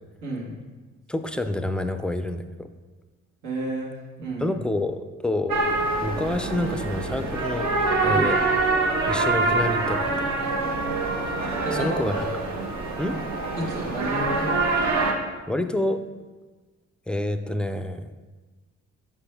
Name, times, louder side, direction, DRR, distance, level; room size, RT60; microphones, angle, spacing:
voice 1, 0.2-0.6 3.4-3.9 4.2-4.6 8.0-8.3 11.6-11.9 13.6-14.6, right 1 dB, 85° right, -4 dB, 1.8 m, -31 dB
voice 2, 1.1-2.4 4.4-5.6 6.0-7.7 8.0-8.4 9.1-10.3 11.7-12.3 13.0-13.2 15.5-16.0 17.1-18.1, left 1 dB, 5° left, 8 dB, 0.3 m, -27 dB
sound 1, 5.5-15.1, right 3 dB, 65° right, 1.0 m, -25 dB
6.0 x 5.4 x 3.4 m, 1.3 s
cardioid pair, 90°, 30 cm